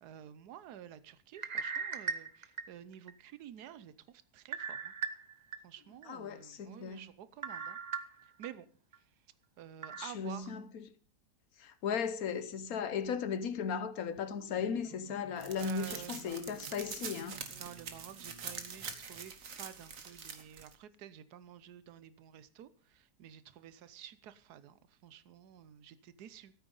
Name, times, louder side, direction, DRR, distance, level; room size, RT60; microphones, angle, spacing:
voice 1, 0.0-4.9 5.6-7.8 8.2-8.7 9.6-10.5 15.6-16.4 17.5-26.5, right 10 dB, 80° right, 1.3 m, -51 dB
sound 1, 1.3-3.1 3.6-3.7 4.5-5.6 6.0-6.1 7.4-8.5 8.9-9.0 9.8-10.1, right 6 dB, 40° right, 0.6 m, -38 dB
voice 2, 6.1-7.1 10.0-10.8 11.6-17.4, left 6 dB, 65° left, 1.3 m, -36 dB
Marimba xylophone, 14.2-19.7, right 4 dB, 25° right, 1.4 m, -56 dB
sound 2, 15.4-20.7, right 6 dB, 60° right, 1.6 m, -45 dB
13.5 x 9.0 x 5.4 m
omnidirectional pair, 1.7 m